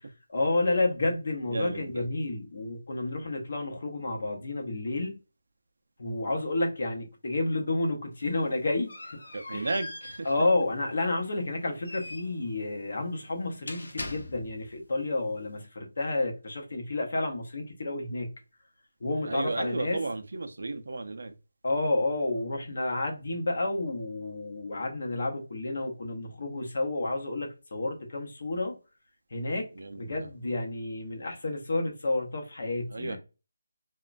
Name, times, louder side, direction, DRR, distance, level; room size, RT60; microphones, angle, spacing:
voice 1, 0.3-5.2 6.0-8.9 9.5-9.7 10.2-18.3 19.0-20.0 21.6-28.8 29.3-29.7 30.0-33.2, left 2 dB, 40° left, 0.6 m, -30 dB
voice 2, 1.5-2.0 9.3-10.3 19.3-21.3 29.8-30.3 32.9-33.2, right 3 dB, 55° right, 0.4 m, -34 dB
sound 1, 8.1-14.7, left 2 dB, 85° left, 0.7 m, -43 dB
3.0 x 2.1 x 2.4 m
figure-of-eight pair, 180°, 0 cm